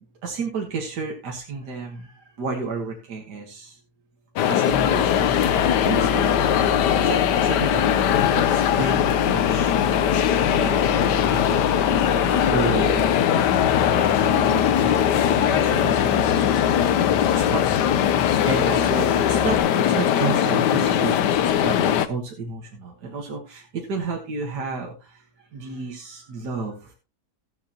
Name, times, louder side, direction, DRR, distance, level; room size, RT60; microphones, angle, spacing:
voice 1, 0.2-3.8 4.5-5.3 5.8-6.3 7.0-8.1 8.3-9.7 10.6-11.0 11.3-11.8 12.2-13.5 13.9-15.1 15.4-16.9 17.3-17.9 18.5-19.6 19.9-21.8 22.1-25.2 25.5-26.9, right 3 dB, 75° right, 1 dB, 2.1 m, -31 dB
sound 1, 4.4-22.1, left 10 dB, 85° left, 1.4 m, -20 dB
Livestock farm animals working animals, 4.7-19.6, right 3 dB, 15° left, 2.2 m, -34 dB
14.0 x 10.5 x 2.9 m, 0.31 s
omnidirectional pair, 1.8 m